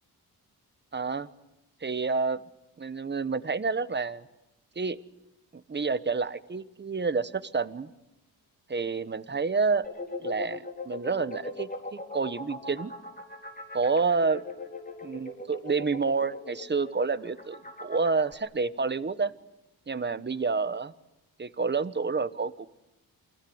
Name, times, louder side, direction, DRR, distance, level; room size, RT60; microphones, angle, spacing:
voice 1, 0.9-1.3 1.8-2.4 2.8-4.2 4.7-5.0 5.7-7.9 8.7-9.9 10.2-12.9 13.7-14.4 15.0-19.3 19.9-20.9 21.4-22.7, right 4 dB, 25° right, 13 dB, 1.2 m, -29 dB
sound 1, 9.8-18.3, left 2 dB, 20° left, 4.1 m, -39 dB
29.0 x 21.0 x 8.0 m, 0.94 s
cardioid pair, 95°, 39 cm